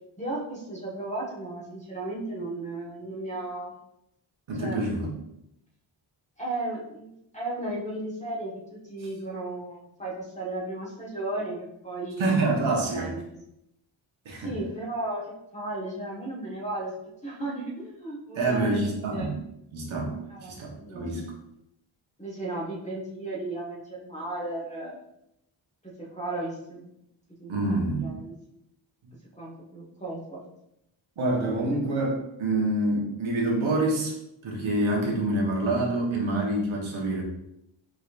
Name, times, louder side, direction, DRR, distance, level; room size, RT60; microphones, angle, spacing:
voice 1, 0.2-3.7 4.6-4.8 6.4-8.6 8.9-12.3 12.9-13.4 14.4-16.9 17.2-19.3 20.3-21.1 22.2-25.0 25.8-26.9 27.4-27.5 28.0-28.3 29.4-30.4 31.7-31.8, right 2 dB, 15° left, -5 dB, 1.4 m, -35 dB
voice 2, 4.5-5.1 12.2-13.1 14.2-14.5 18.3-19.4 19.7-20.1 20.4-21.2 27.5-28.2 31.2-32.1 32.4-34.1 34.4-37.2, right 2 dB, 75° right, -1 dB, 1.3 m, -26 dB
4.9 x 3.9 x 2.5 m, 0.81 s
wide cardioid pair, 85°, 48 cm